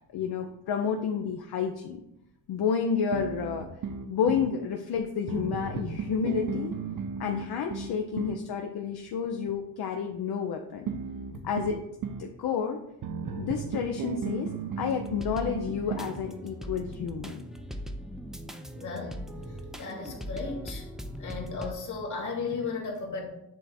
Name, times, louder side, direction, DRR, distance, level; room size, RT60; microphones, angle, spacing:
voice 1, 0.1-2.0 2.5-3.7 4.1-6.7 7.2-10.9 11.4-11.8 12.2-12.8 13.4-17.4, left 6 dB, 70° left, 3 dB, 0.6 m, -30 dB
sound 1, 3.1-4.5 5.3-8.5 10.9-12.3 13.0-16.2, right 5 dB, 55° right, 0.7 m, -35 dB
sound 2, 14.9-21.7, equal, ahead, 0.3 m, -40 dB
voice 2, 18.7-19.2 19.8-20.9 21.2-23.2, left 4 dB, 45° left, 0 dB, 1.8 m, -35 dB
7.4 x 3.4 x 4.2 m, 0.83 s
wide cardioid pair, 135°, 41 cm